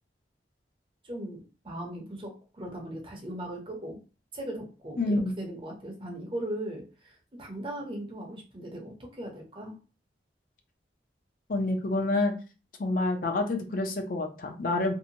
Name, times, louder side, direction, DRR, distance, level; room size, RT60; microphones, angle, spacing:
voice 1, 1.0-4.0 4.3-9.8, right 1 dB, 30° right, 1 dB, 0.6 m, -38 dB
voice 2, 5.0-5.3 11.5-12.3 12.8-14.9, left 2 dB, 50° left, 3 dB, 0.5 m, -27 dB
2.6 x 2.1 x 2.7 m, 0.33 s
head